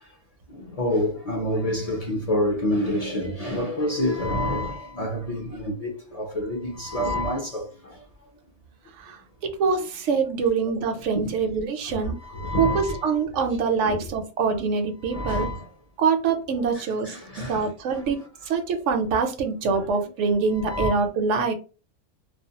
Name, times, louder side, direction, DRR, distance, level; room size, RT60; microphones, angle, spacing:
voice 1, 0.6-7.7 11.1-11.3 11.9-13.0 13.8-14.0 15.1-15.6 16.7-17.6 19.7-19.8 20.6-20.9, left 1 dB, 45° left, 0.5 m, -27 dB
voice 2, 9.4-12.2 12.6-15.5 16.0-17.1 17.5-18.2 18.5-21.5, right 5 dB, 85° right, 0.9 m, -24 dB
2.4 x 2.1 x 2.8 m
omnidirectional pair, 1.2 m